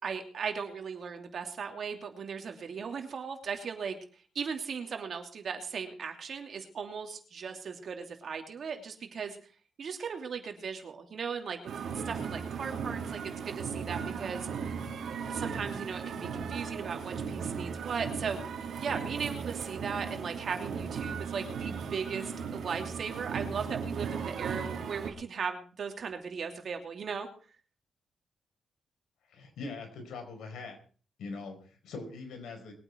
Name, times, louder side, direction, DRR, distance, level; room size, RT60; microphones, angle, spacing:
voice 1, 0.0-4.0 4.3-9.4 9.8-11.6 12.0-14.5 15.3-27.3, right 6 dB, 55° right, 5 dB, 2.8 m, -37 dB
sound 1, 11.7-25.1, right 6 dB, 70° right, 2.5 m, -37 dB
voice 2, 29.3-30.8 31.2-32.7, left 3 dB, 85° left, 4 dB, 4.7 m, -42 dB
22.0 x 8.9 x 4.6 m, 0.41 s
cardioid pair, 115°, 0 cm